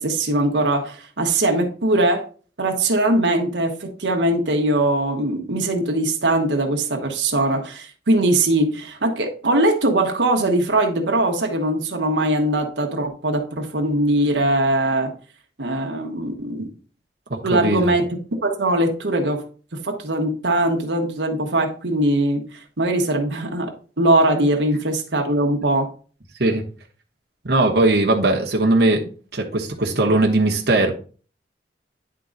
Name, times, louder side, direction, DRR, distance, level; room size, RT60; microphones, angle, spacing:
voice 1, 0.0-2.2 2.6-15.1 15.6-16.7 17.4-18.0 18.3-19.4 19.7-25.9, right 1 dB, 90° right, 1.2 m, -21 dB
voice 2, 17.5-17.9 26.4-26.6 27.4-30.9, right 2 dB, 60° right, 1.2 m, -19 dB
9.9 x 3.8 x 3.9 m
head